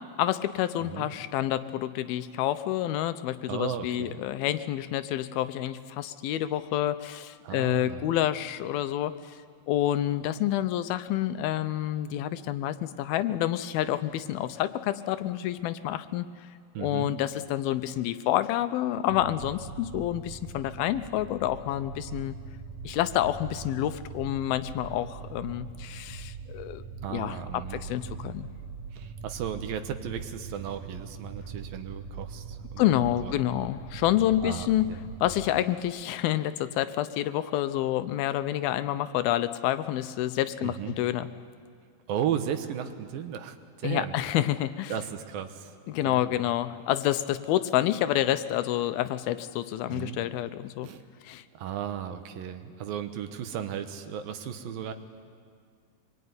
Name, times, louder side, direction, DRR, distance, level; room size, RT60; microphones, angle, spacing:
voice 1, 0.0-9.4 9.7-16.3 16.8-22.4 22.8-26.8 27.1-28.5 32.8-34.9 35.2-41.3 43.8-44.9 45.9-50.9 51.2-51.4, left 13 dB, 90° left, 12 dB, 2.7 m, -28 dB
voice 2, 0.8-1.1 3.5-4.2 7.4-8.0 16.7-17.1 27.0-27.8 28.9-32.9 33.2-33.3 34.4-35.0 40.6-41.0 42.1-44.2 44.9-45.8 46.0-46.5 49.9-50.2 50.8-51.0 51.5-54.9, right 9 dB, 75° right, 8 dB, 2.9 m, -35 dB
sound 1, 19.1-35.5, right 5 dB, 60° right, 2.3 m, -42 dB
24.5 x 22.0 x 9.6 m, 2.2 s
omnidirectional pair, 4.2 m